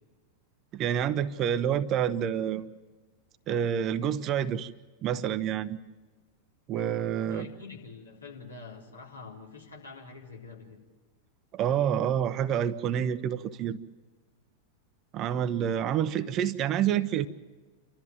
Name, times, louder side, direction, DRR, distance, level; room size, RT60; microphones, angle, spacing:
voice 1, 0.7-2.7 3.5-4.7 5.0-5.8 6.7-7.5 11.5-13.8 15.1-17.3, right 9 dB, 35° right, 13 dB, 0.8 m, -28 dB
voice 2, 7.2-10.8, left 4 dB, 80° left, -2 dB, 3.8 m, -46 dB
29.0 x 13.5 x 7.4 m, 1.3 s
figure-of-eight pair, 90°, 0 cm